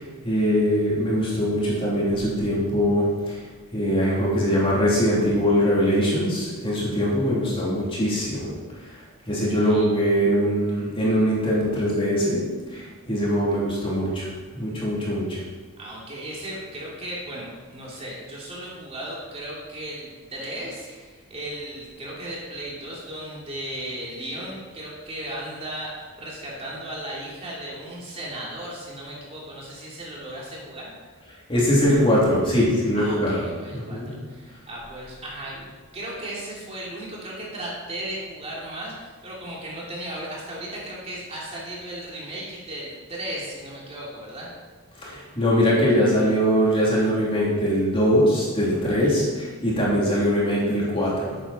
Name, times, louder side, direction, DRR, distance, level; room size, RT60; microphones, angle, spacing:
voice 1, 0.0-3.4 3.7-8.5 8.8-9.0 9.2-14.3 14.5-15.4 31.5-33.4 33.7-34.1 45.0-51.4, equal, 25° left, -6 dB, 3.4 m, -22 dB
voice 2, 9.5-9.9 15.8-30.9 32.9-35.6 35.9-44.5 49.0-49.2, right 1 dB, 30° right, -5 dB, 3.0 m, -36 dB
13.0 x 9.4 x 4.4 m, 1.4 s
head